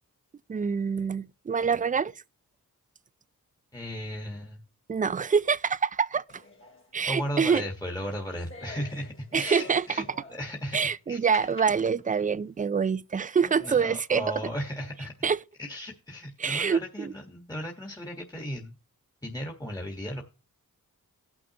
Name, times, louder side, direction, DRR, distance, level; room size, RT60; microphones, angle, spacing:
voice 1, 0.5-2.1 4.9-6.2 6.9-7.6 9.3-9.9 10.7-14.2 15.2-15.4 16.4-17.1, right 6 dB, 25° right, 0.4 m, -26 dB
voice 2, 3.7-4.6 7.1-10.0 10.3-11.2 13.6-15.1 15.6-18.7 19.2-20.2, equal, 10° left, 1.5 m, -36 dB
sound 1, 6.3-10.7 11.3-12.4 12.9-13.0 13.4-13.8, left 2 dB, 35° left, 2.5 m, -48 dB
17.0 x 6.1 x 2.9 m
cardioid pair, 55°, 37 cm